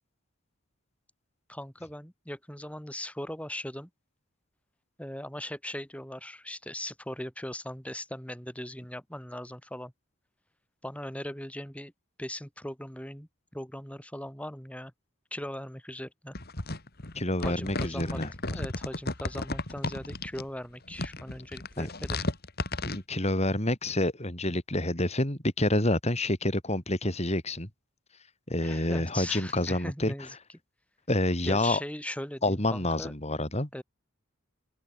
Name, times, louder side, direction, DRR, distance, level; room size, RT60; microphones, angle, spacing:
voice 1, 1.5-3.9 5.0-9.9 10.8-11.9 12.2-14.9 15.3-16.3 17.4-18.2 18.5-22.2 28.6-30.4 31.5-33.1 33.7-33.8, left 1 dB, 5° left, 6.2 m, -39 dB
sound 1, 16.3-20.4 20.9-23.0, left 2 dB, 45° left, 2.9 m, -34 dB
voice 2, 17.2-18.3 21.8-21.9 22.8-27.7 28.5-30.1 31.1-31.8 32.4-33.7, left 1 dB, 30° left, 4.2 m, -28 dB
open air
head